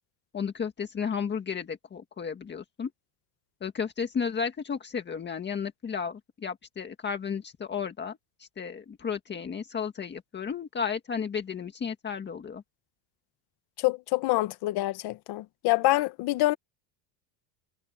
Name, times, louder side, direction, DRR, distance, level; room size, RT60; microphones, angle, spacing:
voice 1, 0.3-2.9 3.6-12.6, left 6 dB, 20° left, 1.9 m, -33 dB
voice 2, 13.8-16.6, left 18 dB, 55° left, 1.3 m, -26 dB
cardioid pair, 155°, 46 cm